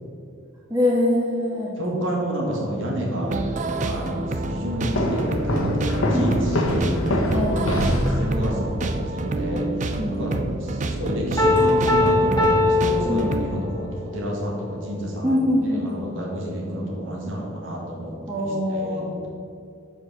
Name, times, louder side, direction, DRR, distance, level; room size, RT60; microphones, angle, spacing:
voice 1, 0.7-1.7 6.1-6.3 7.3-7.7 10.0-10.4 13.1-13.4 15.2-16.1 18.3-19.1, left 1 dB, 15° right, -6 dB, 1.6 m, -23 dB
voice 2, 1.8-3.4 3.8-7.0 7.6-9.7 10.1-10.4 10.6-15.5 15.8-19.3, equal, 65° right, -2 dB, 1.8 m, -30 dB
sound 1, 3.1-13.5, right 2 dB, 35° right, 0.5 m, -28 dB
sound 2, 4.9-8.6, left 1 dB, 75° left, 1.2 m, -24 dB
Piano, 11.4-13.9, left 2 dB, 20° left, 1.3 m, -20 dB
7.8 x 4.8 x 6.0 m, 2.4 s
head